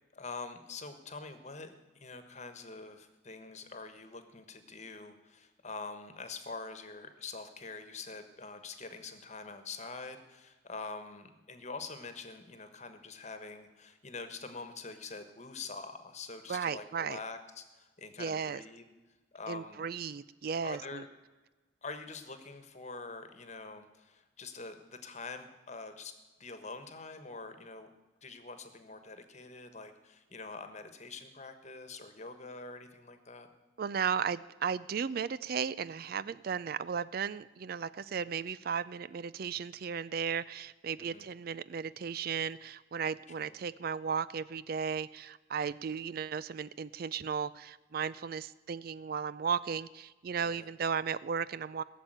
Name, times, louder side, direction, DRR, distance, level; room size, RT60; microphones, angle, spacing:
voice 1, 0.1-18.8 19.3-19.8 20.6-21.1 21.8-26.1 26.4-27.9 28.2-33.5 41.0-41.3 43.4-43.5 50.4-50.7, left 4 dB, 35° left, 9 dB, 1.3 m, -45 dB
voice 2, 16.5-17.2 18.2-18.6 19.5-21.0 33.8-51.8, right 6 dB, 50° right, 17 dB, 0.4 m, -35 dB
17.5 x 7.3 x 9.0 m, 1.2 s
head